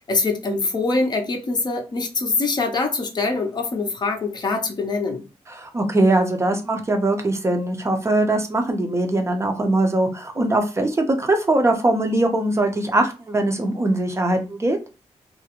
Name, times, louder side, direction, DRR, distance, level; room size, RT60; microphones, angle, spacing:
voice 1, 0.1-5.2, left 3 dB, 40° left, 0.5 m, -24 dB
voice 2, 5.5-14.8, right 2 dB, 25° right, 0.5 m, -21 dB
2.3 x 2.0 x 2.8 m
cardioid pair, 105°, 12 cm